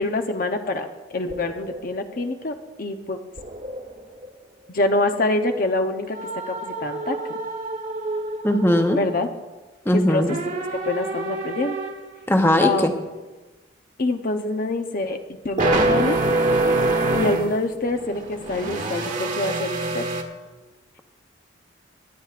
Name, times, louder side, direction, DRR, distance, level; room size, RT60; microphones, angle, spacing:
voice 1, 0.0-3.2 4.7-6.2 6.5-7.4 9.0-9.3 9.9-11.8 12.6-12.8 14.0-16.2 17.1-20.1, left 2 dB, 50° left, 6 dB, 0.7 m, -26 dB
sound 1, 1.3-1.9 2.2-2.4 3.4-4.3 6.1-9.2 10.3-12.1 15.6-17.5 17.8-20.2, right 2 dB, 45° right, 1.2 m, -26 dB
voice 2, 8.4-9.0 9.9-10.4 12.3-12.9, left 1 dB, 15° left, 5 dB, 0.8 m, -19 dB
23.0 x 10.0 x 2.5 m, 1.2 s
head